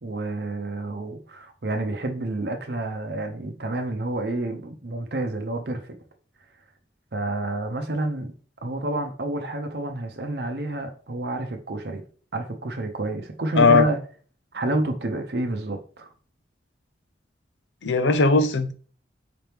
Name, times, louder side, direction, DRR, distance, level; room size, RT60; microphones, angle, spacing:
voice 1, 0.0-5.9 7.1-8.3 8.6-12.0 12.3-14.0 14.5-16.1, right 2 dB, 65° right, 0.7 m, -29 dB
voice 2, 17.8-18.7, left 4 dB, 80° left, 0.5 m, -18 dB
5.1 x 3.0 x 3.4 m
head